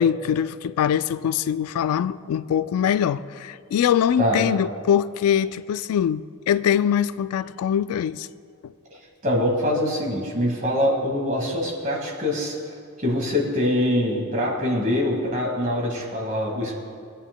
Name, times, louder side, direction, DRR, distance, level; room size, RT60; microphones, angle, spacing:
voice 1, 0.0-8.3 8.6-8.7, left 9 dB, 90° left, 0.3 m, -23 dB
voice 2, 9.2-12.6 13.0-16.7, left 1 dB, 35° right, 1.9 m, -24 dB
23.5 x 8.9 x 2.2 m
head